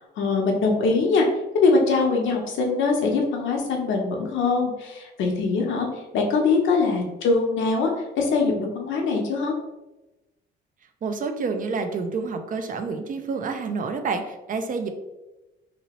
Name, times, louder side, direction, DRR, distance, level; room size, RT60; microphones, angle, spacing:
voice 1, 0.2-1.2 1.6-5.9 6.1-7.9 8.2-9.5, left 4 dB, 75° left, 1 dB, 0.7 m, -22 dB
voice 2, 11.0-14.9, right 4 dB, 40° right, 7 dB, 0.5 m, -28 dB
2.9 x 2.8 x 2.9 m, 1.0 s
cardioid pair, 90°, 20 cm